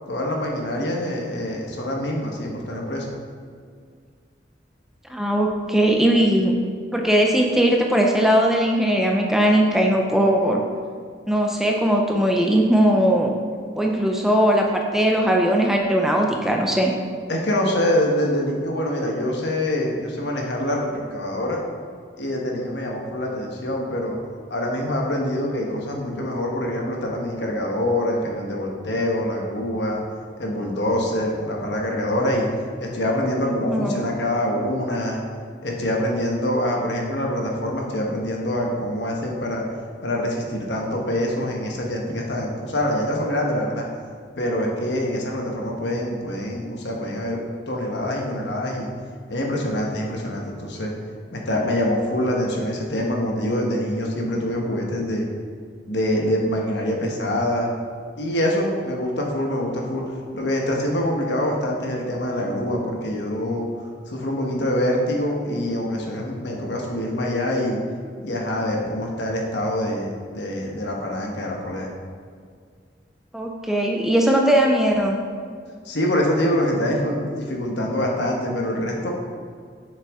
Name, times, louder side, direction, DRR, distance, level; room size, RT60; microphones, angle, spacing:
voice 1, 0.1-3.1 17.3-21.6 22.2-24.2 24.5-30.0 30.4-32.5 32.8-35.2 35.6-39.6 40.0-43.8 44.4-48.9 49.3-50.9 51.3-55.3 55.9-57.7 58.2-63.7 64.1-67.8 68.2-71.9 75.8-79.1, left 1 dB, 75° left, 0 dB, 1.3 m, -25 dB
voice 2, 5.1-6.6 6.9-10.6 11.3-13.3 13.8-16.9 33.4-34.0 73.3-75.2, right 1 dB, ahead, 1 dB, 0.5 m, -19 dB
6.8 x 6.6 x 3.6 m, 2.1 s
head